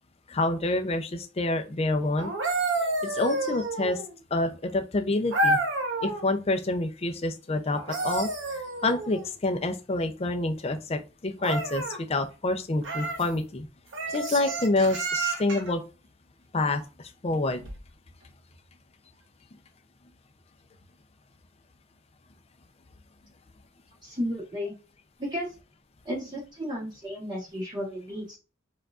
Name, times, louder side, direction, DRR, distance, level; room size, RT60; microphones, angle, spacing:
voice 1, 0.3-2.3 3.1-4.0 4.3-5.6 6.0-8.3 8.8-13.7 14.1-15.8 16.5-16.8 17.2-17.6, left 2 dB, 30° left, 6 dB, 0.5 m, -27 dB
sound 1, 2.2-4.2 5.3-6.3 7.7-9.3 11.4-12.0 12.8-13.3 13.9-15.7 17.6-17.8, right 2 dB, 65° right, 0.9 m, -29 dB
voice 2, 24.0-24.7 25.2-25.5 26.0-28.4, equal, 20° right, -5 dB, 1.2 m, -33 dB
4.6 x 2.3 x 2.4 m, 0.31 s
head